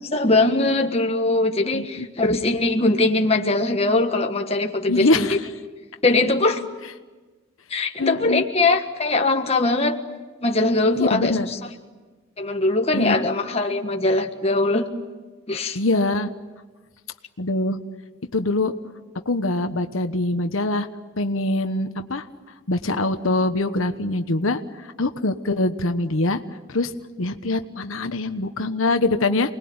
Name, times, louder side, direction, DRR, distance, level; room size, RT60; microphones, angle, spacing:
voice 1, 0.1-5.3 6.0-6.6 7.7-10.0 10.4-11.4 12.4-14.9 15.5-15.8, left 2 dB, 30° left, 3 dB, 1.5 m, -21 dB
voice 2, 1.7-2.1 4.9-5.4 8.0-8.4 11.0-11.5 12.9-13.1 15.7-16.3 17.4-17.8 18.3-18.7 19.3-20.9 21.2-22.3 22.7-24.6 25.0-26.4 26.7-26.9 27.2-29.5, left 2 dB, 80° left, 8 dB, 1.2 m, -23 dB
28.5 x 20.5 x 8.8 m, 1.3 s
head